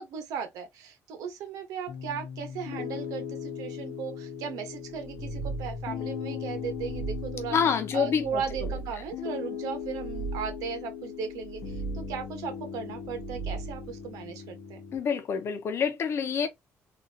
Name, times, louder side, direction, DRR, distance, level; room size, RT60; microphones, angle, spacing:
voice 1, 0.0-7.6 7.9-14.8, right 7 dB, 85° right, 1.3 m, -37 dB
Piano, 1.9-15.0, left 7 dB, 75° left, 1.0 m, -38 dB
sound 1, 4.9-6.0 6.5-7.6 8.1-9.2 9.7-10.8 11.3-12.4 12.9-14.0, right 5 dB, 5° right, 1.3 m, -39 dB
voice 2, 7.5-8.3 8.6-8.8 14.9-16.5, left 6 dB, 50° left, 1.0 m, -27 dB
4.0 x 2.7 x 2.8 m
cardioid pair, 125°, 6 cm